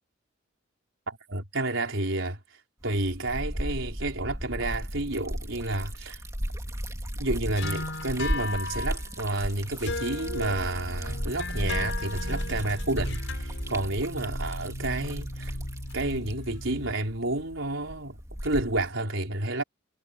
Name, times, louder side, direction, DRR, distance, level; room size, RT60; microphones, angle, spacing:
voice 1, 1.1-2.6 2.8-6.2 7.2-15.6 15.9-19.6, right 2 dB, 80° right, 4.3 m, -30 dB
Liquid, 2.8-18.9, equal, 15° right, 2.6 m, -35 dB
sound 1, 7.6-16.9, left 2 dB, 65° left, 6.1 m, -36 dB
head